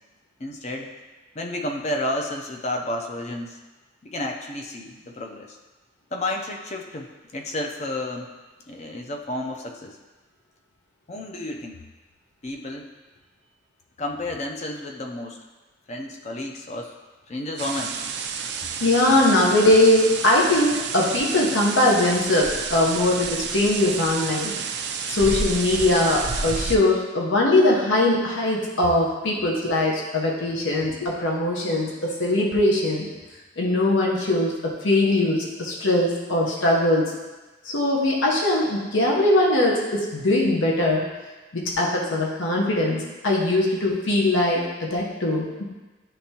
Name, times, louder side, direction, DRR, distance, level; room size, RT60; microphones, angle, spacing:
voice 1, 0.4-0.9 1.3-3.6 4.0-5.6 6.1-8.3 8.7-10.0 11.1-11.8 12.4-12.9 14.0-15.4 15.9-16.9 17.3-18.0, left 1 dB, 35° left, 2 dB, 0.6 m, -31 dB
sound 1, 17.6-26.8, right 5 dB, 60° right, 0.4 m, -30 dB
voice 2, 18.8-24.5 25.1-33.1 33.6-37.1 37.6-41.0 41.5-45.6, left 1 dB, 80° left, -3 dB, 0.9 m, -21 dB
10.0 x 3.4 x 2.9 m, 1.2 s
head